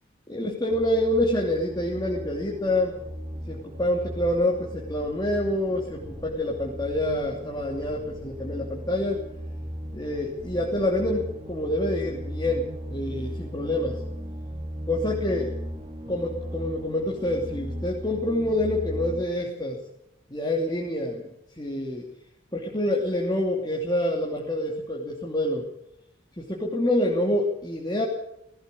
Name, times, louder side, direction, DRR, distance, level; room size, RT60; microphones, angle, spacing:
voice 1, 0.3-3.0 3.5-9.2 9.9-14.0 14.9-15.5 16.1-19.8 20.3-21.3 21.6-22.0 22.5-25.6 26.4-28.0, left 1 dB, 20° left, -3 dB, 2.9 m, -27 dB
sound 1, 0.7-19.3, equal, 30° right, 2.6 m, -37 dB
19.5 x 16.0 x 8.5 m, 0.79 s
head